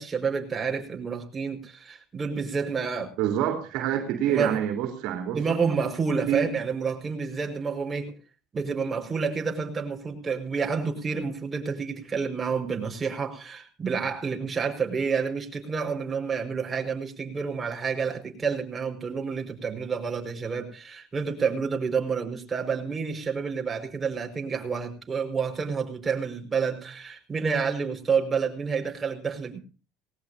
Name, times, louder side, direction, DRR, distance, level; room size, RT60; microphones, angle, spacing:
voice 1, 0.0-3.1 4.3-4.6 5.3-8.1 8.5-29.6, right 5 dB, 25° right, 3 dB, 5.4 m, -29 dB
voice 2, 3.2-5.6 6.3-6.6, right 10 dB, 70° right, 6 dB, 3.2 m, -27 dB
19.5 x 19.0 x 2.8 m, 0.35 s
supercardioid pair, 85°, 0 cm